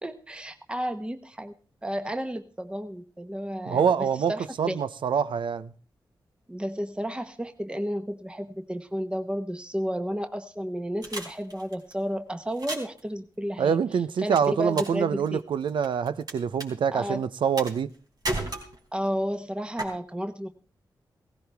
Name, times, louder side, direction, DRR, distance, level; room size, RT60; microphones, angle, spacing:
voice 1, 0.0-1.5 1.8-4.8 6.5-13.8 14.2-15.4 16.9-17.2 18.9-20.5, equal, 10° right, 1.1 m, -32 dB
voice 2, 3.7-5.7 13.6-17.9, right 7 dB, 85° right, 0.6 m, -25 dB
sound 1, 11.0-11.9 12.5-13.0 14.4-15.0 15.3-16.3 16.6-16.7 17.6-18.0 18.2-19.1 19.8-19.9, right 1 dB, 55° right, 3.7 m, -33 dB
17.0 x 15.5 x 3.4 m
cardioid pair, 70°, 8 cm